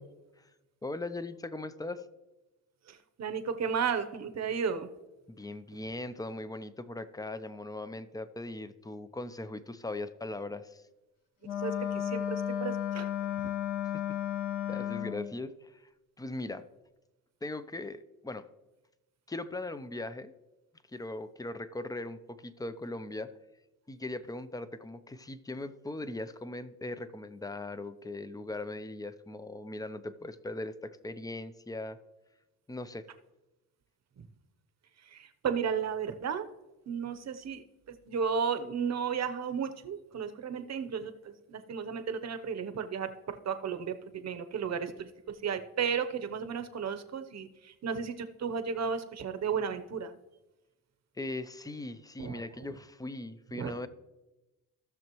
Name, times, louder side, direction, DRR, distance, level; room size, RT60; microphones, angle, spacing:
voice 1, 0.8-2.0 5.3-10.8 13.9-14.0 14.7-15.9 16.2-16.7 17.4-18.5 19.3-20.3 20.9-23.3 23.9-32.0 32.7-33.1 51.2-53.9, left 2 dB, 10° left, 12 dB, 0.5 m, -39 dB
voice 2, 2.9-4.9 11.6-13.1 34.2-34.3 35.1-36.5 36.9-37.6 38.1-45.1 45.4-50.1 52.2-52.4 53.5-53.7, right 6 dB, 45° right, 9 dB, 0.9 m, -34 dB
Wind instrument woodwind instrument, 11.4-15.3, left 10 dB, 65° left, 1.9 m, -33 dB
16.5 x 6.5 x 3.0 m, 1.0 s
cardioid pair, 105°, 36 cm